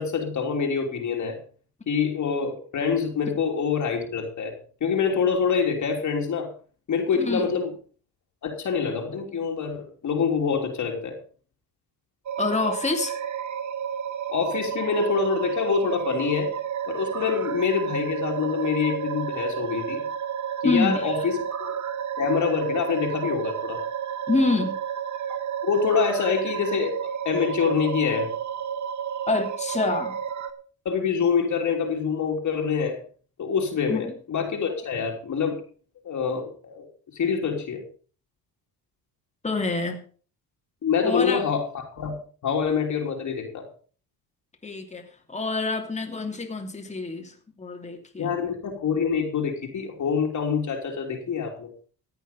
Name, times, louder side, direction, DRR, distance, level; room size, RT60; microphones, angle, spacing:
voice 1, 0.0-1.4 1.9-4.5 4.8-6.5 6.9-7.7 8.4-11.2 14.3-16.5 16.9-20.1 20.6-21.7 22.2-23.8 25.6-28.3 30.8-33.0 33.4-35.6 36.0-36.9 37.1-37.8 40.8-43.6 48.2-51.7, left 6 dB, 50° left, 1 dB, 3.2 m, -26 dB
voice 2, 7.1-7.5 12.4-13.2 20.6-21.1 24.3-24.7 29.3-30.1 33.9-34.1 39.4-40.0 41.0-41.4 44.6-45.0 45.3-48.4, left 3 dB, 20° left, 3 dB, 3.0 m, -26 dB
sound 1, 12.3-30.5, right 8 dB, 50° right, 1.5 m, -31 dB
14.5 x 9.0 x 5.4 m, 0.42 s
cardioid pair, 100°, 37 cm